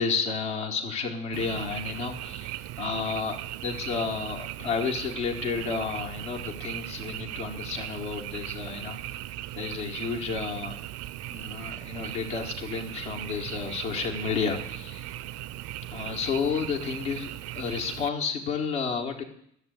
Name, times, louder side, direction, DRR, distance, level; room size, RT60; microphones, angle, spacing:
voice 1, 0.0-9.2 9.5-10.8 11.3-15.1 15.9-17.3 17.5-19.2, left 5 dB, 75° left, 0 dB, 1.4 m, -31 dB
Frog, 1.3-18.1, right 14 dB, 45° right, 0.5 m, -38 dB
13.5 x 6.8 x 8.1 m, 0.70 s
figure-of-eight pair, 50°, 35 cm